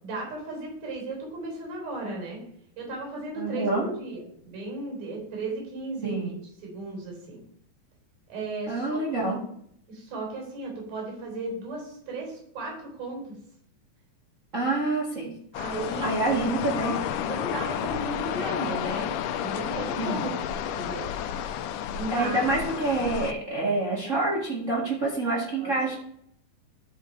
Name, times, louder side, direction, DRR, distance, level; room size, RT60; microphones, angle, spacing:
voice 1, 0.0-2.4 2.8-6.3 6.6-7.4 8.3-9.3 9.9-13.2 15.5-16.1 16.6-16.7 17.3-19.1 19.4-20.3 20.6-21.1 21.9-22.4 25.6-25.7, right 2 dB, 50° right, -1 dB, 5.1 m, -35 dB
voice 2, 3.4-3.8 6.0-6.3 8.7-9.4 14.5-15.3 16.0-16.9 20.0-20.3 22.1-26.0, right 2 dB, 30° right, -4 dB, 1.5 m, -27 dB
sound 1, 15.5-23.3, left 9 dB, 80° left, 1.9 m, -31 dB
12.5 x 4.9 x 4.5 m, 0.68 s
omnidirectional pair, 4.1 m